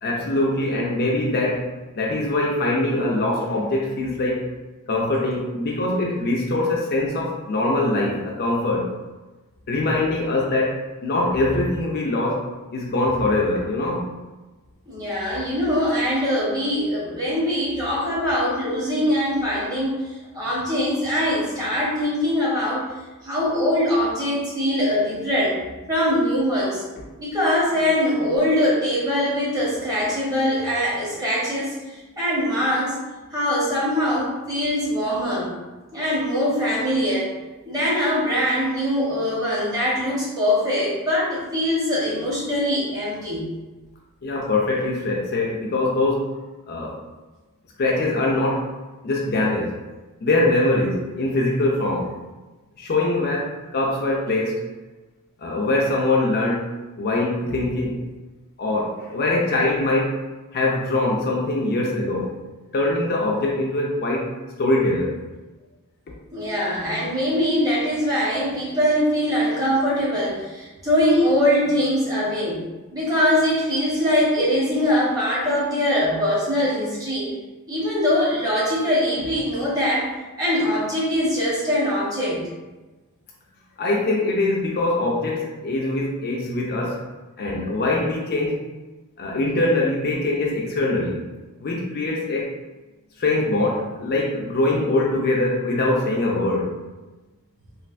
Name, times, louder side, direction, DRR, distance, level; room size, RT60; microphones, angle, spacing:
voice 1, 0.0-1.7 1.9-4.5 4.9-8.9 9.7-10.8 11.0-12.5 12.7-14.0 44.2-46.3 46.7-47.0 47.8-48.7 49.0-49.7 50.2-52.1 52.8-54.7 55.4-58.0 58.6-60.2 60.5-62.3 62.7-64.3 64.6-65.1 83.8-87.0 87.4-88.6 89.2-91.3 91.6-92.5 93.2-96.7, left 2 dB, 45° left, -2 dB, 0.4 m, -23 dB
voice 2, 14.8-20.0 20.3-22.8 23.2-26.8 27.2-33.0 33.3-35.5 35.9-37.3 37.7-43.5 66.3-72.6 72.9-77.3 77.7-80.1 80.4-82.4, equal, 15° right, -7 dB, 1.0 m, -22 dB
3.2 x 2.4 x 2.5 m, 1.2 s
head